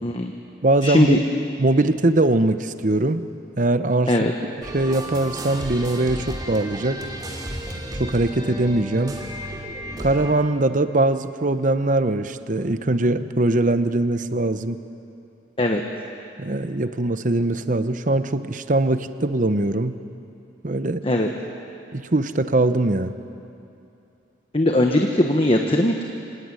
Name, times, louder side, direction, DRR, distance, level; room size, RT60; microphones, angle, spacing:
voice 1, 0.0-0.3 0.8-1.2 4.1-4.3 15.6-15.8 21.0-21.3 24.5-26.0, left 1 dB, 30° left, 2 dB, 1.3 m, -19 dB
voice 2, 0.6-1.2 1.6-3.2 3.6-4.1 4.7-7.1 8.0-9.2 10.0-14.8 16.4-20.0 20.6-21.0 21.9-23.2, right 2 dB, 45° right, 11 dB, 0.9 m, -21 dB
sound 1, 4.6-10.3, equal, 20° right, 2.6 m, -33 dB
26.5 x 17.5 x 9.7 m, 2.8 s
head